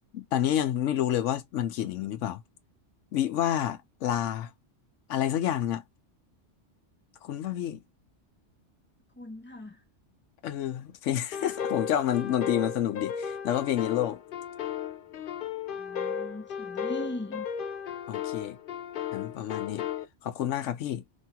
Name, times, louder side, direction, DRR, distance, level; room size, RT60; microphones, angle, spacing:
voice 1, 0.1-2.4 3.1-4.5 5.1-5.8 7.2-7.8 10.4-14.2 18.1-18.6 19.1-19.9 20.2-21.0, left 11 dB, 90° left, 1.0 m, -29 dB
voice 2, 9.2-9.8 15.8-17.5, left 1 dB, 15° left, 0.4 m, -39 dB
sound 1, 11.3-20.0, left 8 dB, 60° left, 0.6 m, -35 dB
3.0 x 2.3 x 2.6 m
omnidirectional pair, 1.2 m